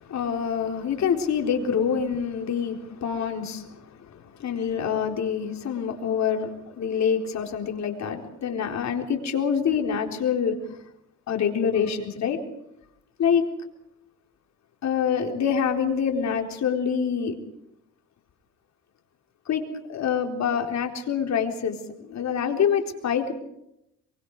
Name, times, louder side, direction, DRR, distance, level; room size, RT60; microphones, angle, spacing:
voice 1, 0.0-10.6 11.3-12.4 13.2-13.5 14.8-17.4 19.5-19.6 19.9-23.3, left 7 dB, 65° left, 3 dB, 4.2 m, -26 dB
24.5 x 24.0 x 4.9 m, 0.80 s
cardioid pair, 90°, 30 cm